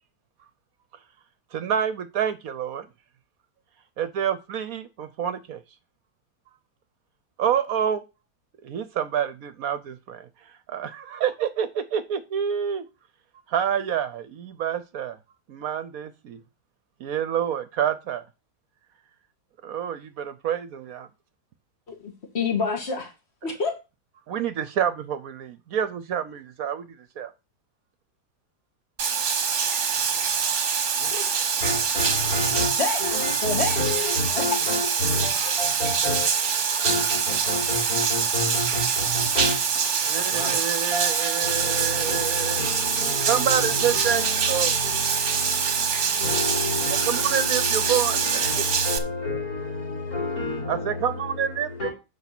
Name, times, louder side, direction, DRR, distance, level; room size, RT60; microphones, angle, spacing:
voice 1, 1.5-2.9 4.0-5.6 7.4-8.0 8.6-10.3 10.7-12.9 13.5-15.2 15.5-16.4 17.0-18.2 19.6-21.1 24.3-26.9 27.2-27.3 40.0-42.6 43.3-44.2 44.5-44.7 47.1-48.2 50.7-51.7, right 9 dB, 65° right, 1.0 m, -27 dB
voice 2, 21.9-23.1 23.4-23.8 32.8-33.0 33.4-33.8 34.4-34.5, left 4 dB, 40° left, 2.2 m, -27 dB
Bathtub (filling or washing), 29.0-49.0, right 6 dB, 50° right, 1.3 m, -24 dB
voice 3, 29.9-30.5 31.0-51.9, left 2 dB, 60° left, 4.1 m, -31 dB
8.2 x 5.5 x 5.9 m
omnidirectional pair, 1.8 m